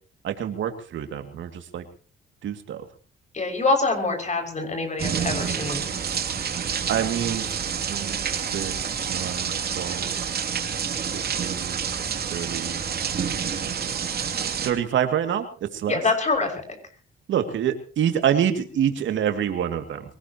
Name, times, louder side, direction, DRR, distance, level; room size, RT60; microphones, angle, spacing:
voice 1, 0.2-1.8 2.4-2.8 6.9-7.6 7.9-8.3 8.5-10.2 11.4-11.9 12.3-12.8 14.6-16.0 17.3-20.0, right 9 dB, 70° right, 6 dB, 2.5 m, -27 dB
voice 2, 3.3-5.9 15.9-16.5, left 3 dB, 35° left, 4 dB, 6.3 m, -25 dB
sound 1, 5.0-14.7, right 7 dB, 50° right, 2.8 m, -28 dB
24.0 x 18.0 x 3.0 m, 0.39 s
cardioid pair, 90°, 20 cm